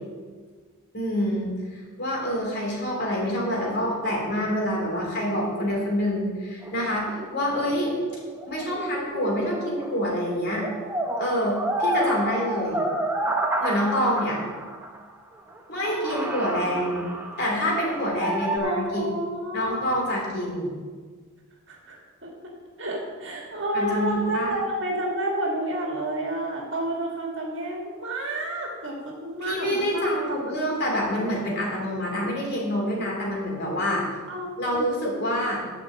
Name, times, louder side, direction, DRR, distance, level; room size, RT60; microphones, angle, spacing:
voice 1, 0.9-7.9 8.5-10.6 11.2-12.8 13.6-14.4 15.7-17.1 17.4-19.0 19.5-20.7 23.7-24.5 29.4-34.0 34.6-35.6, equal, 45° left, -3 dB, 3.1 m, -26 dB
sound 1, 6.6-10.2 10.5-15.0 15.5-15.6 15.8-18.6, right 1 dB, 10° right, 1.0 m, -30 dB
voice 2, 18.6-19.8 21.7-22.3 22.8-30.5 34.3-34.9, right 1 dB, 55° right, -1 dB, 1.9 m, -30 dB
11.0 x 5.2 x 7.7 m, 1.5 s
head